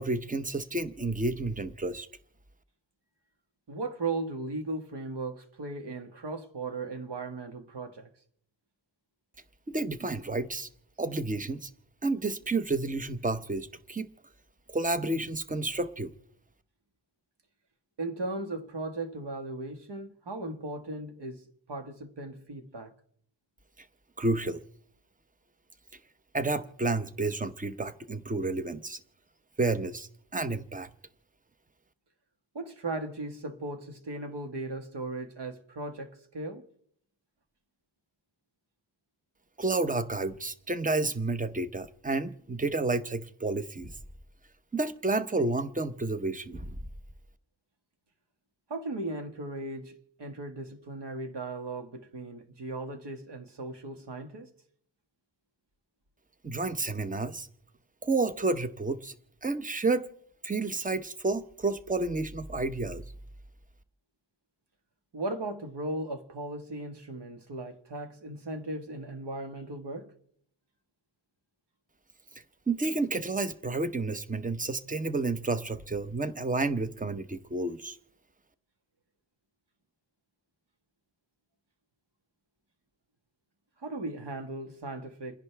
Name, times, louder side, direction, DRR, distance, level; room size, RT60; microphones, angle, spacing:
voice 1, 0.0-2.1 9.7-10.7 11.0-11.7 12.0-14.1 14.7-16.1 24.2-24.6 26.3-29.0 29.6-30.9 39.6-43.9 44.7-46.7 56.4-57.5 58.0-59.1 59.4-60.1 60.4-63.0 72.7-78.0, right 3 dB, 20° right, 0.8 m, -30 dB
voice 2, 3.7-8.1 18.0-21.4 21.7-22.9 32.5-36.6 48.7-54.5 65.1-70.1 83.8-85.4, right 2 dB, 65° right, 1.7 m, -37 dB
29.5 x 10.5 x 3.4 m
wide cardioid pair, 90°, 44 cm